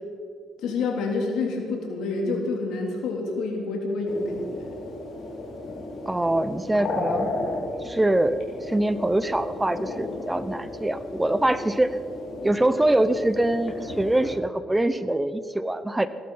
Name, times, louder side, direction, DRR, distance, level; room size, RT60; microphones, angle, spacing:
voice 1, 0.6-4.8, left 3 dB, 85° left, 1 dB, 3.2 m, -28 dB
sound 1, 4.1-14.4, left 2 dB, 60° left, 4.0 m, -34 dB
voice 2, 6.1-7.3 7.8-12.0 12.4-16.1, right 1 dB, 10° right, 13 dB, 0.7 m, -24 dB
16.5 x 12.0 x 5.7 m, 2.2 s
cardioid pair, 90°, 0 cm